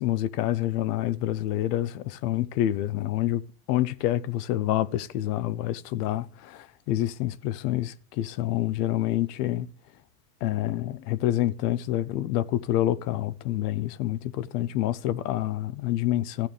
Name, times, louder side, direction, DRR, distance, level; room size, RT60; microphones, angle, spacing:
voice 1, 0.0-3.4 3.7-9.7 10.4-16.5, left 13 dB, 85° left, 0.7 m, -27 dB
13.0 x 9.1 x 3.3 m
supercardioid pair, 135°, 46 cm